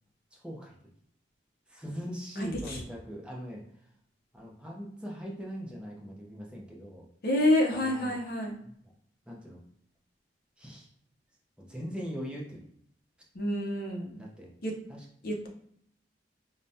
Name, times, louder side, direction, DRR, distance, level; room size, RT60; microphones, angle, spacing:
voice 1, 0.3-0.8 1.7-3.6 4.3-7.1 7.7-8.2 8.6-8.9 9.3-9.6 10.6-10.9 11.6-12.7 14.1-14.5 14.9-15.0, equal, 5° right, -3 dB, 0.7 m, -40 dB
voice 2, 2.4-2.8 7.2-8.6 13.3-14.2 14.6-14.7 15.2-15.5, left 1 dB, 55° left, 1 dB, 0.7 m, -28 dB
5.0 x 2.2 x 2.7 m, 0.68 s
head